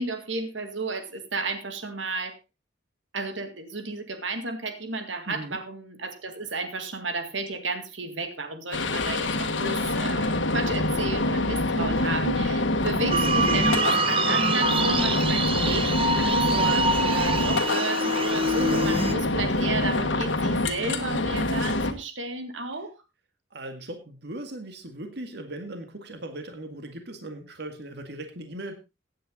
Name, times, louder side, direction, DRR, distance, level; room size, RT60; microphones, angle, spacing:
voice 1, 0.0-2.4 3.1-22.9, right 3 dB, 80° right, 7 dB, 2.1 m, -33 dB
voice 2, 5.3-5.6 11.7-12.2 16.6-16.8 18.6-19.1 23.5-28.7, right 1 dB, 60° right, 6 dB, 2.0 m, -39 dB
sound 1, 8.7-21.9, left 2 dB, 80° left, 1.7 m, -26 dB
sound 2, 13.1-19.1, right 2 dB, 30° right, 1.4 m, -25 dB
16.0 x 9.5 x 3.8 m, 0.27 s
head